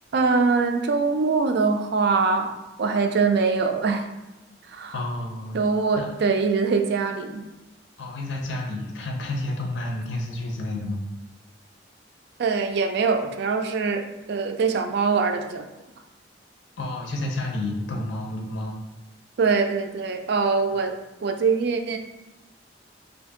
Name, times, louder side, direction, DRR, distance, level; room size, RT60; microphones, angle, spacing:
voice 1, 0.1-2.5 2.8-4.0 4.7-4.9 5.5-7.4 12.4-15.7 19.4-20.9 21.2-22.0, right 4 dB, 60° right, 5 dB, 0.4 m, -23 dB
voice 2, 4.9-5.6 5.9-6.1 8.0-11.0 16.8-18.8, left 1 dB, 70° left, 0 dB, 0.5 m, -30 dB
2.6 x 2.5 x 3.6 m, 1.0 s
head